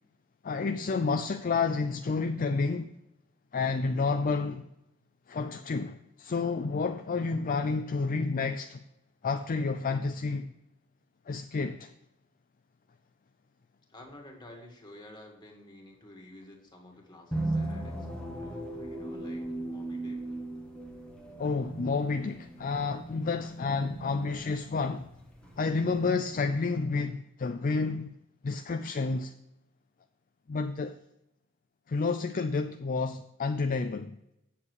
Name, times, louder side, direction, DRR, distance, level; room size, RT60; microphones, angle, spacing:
voice 1, 0.4-2.9 3.5-4.6 5.3-8.8 9.2-10.5 11.3-11.9 21.4-25.1 25.6-28.1 28.4-29.3 30.5-31.0 31.9-34.2, left 4 dB, 40° left, 0.4 m, -30 dB
voice 2, 13.9-20.2, left 1 dB, 20° left, 2.0 m, -51 dB
sound 1, 17.3-26.1, right 2 dB, 5° left, 1.4 m, -38 dB
8.5 x 7.4 x 4.7 m
head